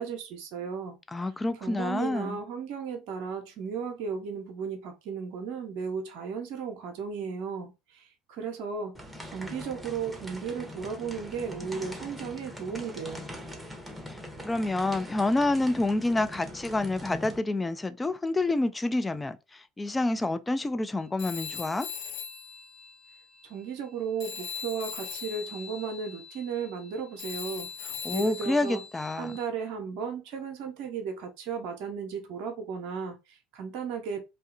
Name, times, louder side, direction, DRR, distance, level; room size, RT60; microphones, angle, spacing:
voice 1, 0.0-1.0 1.6-9.0 9.2-13.3 23.4-27.7 28.1-28.8 29.1-34.2, right 6 dB, 60° right, 0.6 m, -35 dB
voice 2, 1.1-2.4 14.1-21.9 28.0-29.3, left 2 dB, 15° left, 0.4 m, -28 dB
sound 1, 8.9-17.4, left 1 dB, 5° right, 0.8 m, -42 dB
Telephone, 21.2-23.9 24.2-29.5, left 7 dB, 65° left, 0.7 m, -40 dB
2.7 x 2.2 x 2.5 m
hypercardioid pair, 70°, 0 cm